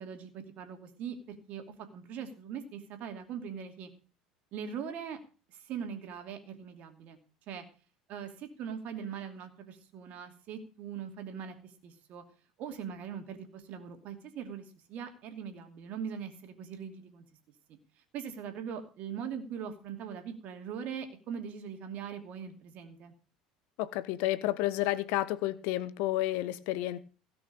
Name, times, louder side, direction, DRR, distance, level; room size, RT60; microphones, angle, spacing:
voice 1, 0.0-3.9 4.5-5.2 5.5-7.2 7.5-7.6 8.1-12.2 12.6-17.2 17.7-17.8 18.1-23.1, right 7 dB, 50° right, 2.7 m, -41 dB
voice 2, 23.8-27.0, left 16 dB, 60° left, 0.9 m, -31 dB
17.0 x 6.2 x 6.8 m
figure-of-eight pair, 70°, 3 cm